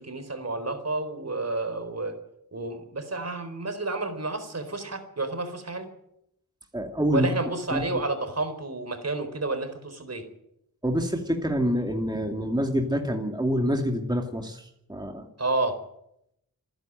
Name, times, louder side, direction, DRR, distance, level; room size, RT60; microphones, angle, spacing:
voice 1, 0.0-2.2 2.5-5.9 7.1-10.3 15.4-15.8, right 2 dB, 45° right, 9 dB, 4.2 m, -30 dB
voice 2, 6.7-7.3 7.7-7.8 10.8-15.3, equal, 10° right, 3 dB, 2.5 m, -26 dB
27.0 x 11.0 x 9.1 m, 0.79 s
wide cardioid pair, 75°, 35 cm